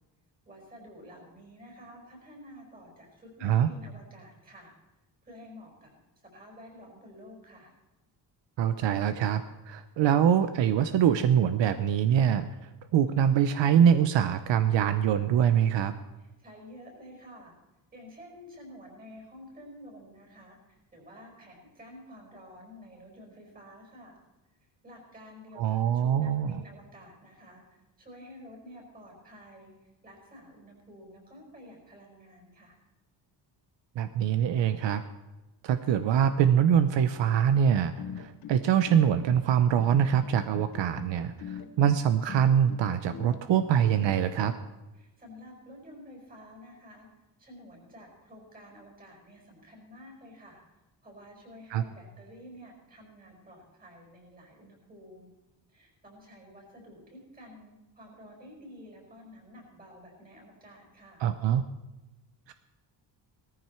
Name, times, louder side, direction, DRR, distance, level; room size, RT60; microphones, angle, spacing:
voice 1, 0.5-4.7 5.2-5.9 6.3-7.7 16.2-17.5 17.9-24.2 24.8-29.7 30.0-32.8 44.9-47.1 47.4-50.6 51.0-55.3 55.7-61.3, equal, 20° right, 1 dB, 5.2 m, -50 dB
voice 2, 8.6-12.5 12.9-15.9 25.6-26.6 34.0-35.0 35.6-44.5 51.7-51.8 61.2-61.6 62.5-62.6, right 9 dB, 75° right, 11 dB, 0.8 m, -24 dB
sound 1, 37.8-44.6, left 8 dB, 50° left, 0.9 m, -42 dB
18.0 x 14.5 x 4.5 m, 1.1 s
wide cardioid pair, 175°, 45 cm